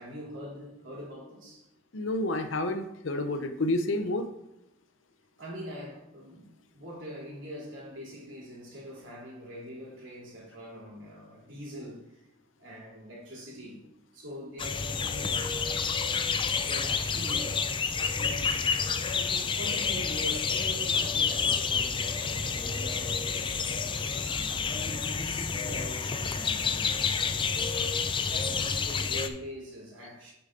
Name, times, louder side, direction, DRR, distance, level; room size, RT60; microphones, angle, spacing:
voice 1, 0.0-1.6 5.4-6.5 6.7-12.2 12.6-13.8 14.1-15.8 16.6-17.9 18.2-18.7 19.1-26.8 27.7-27.9 28.3-30.3, equal, 75° right, 3.1 m, -43 dB
voice 2, 1.9-4.3, left 2 dB, 75° left, 0.7 m, -29 dB
sound 1, 14.6-29.3, left 5 dB, 25° left, 0.4 m, -29 dB
7.0 x 6.9 x 3.8 m
head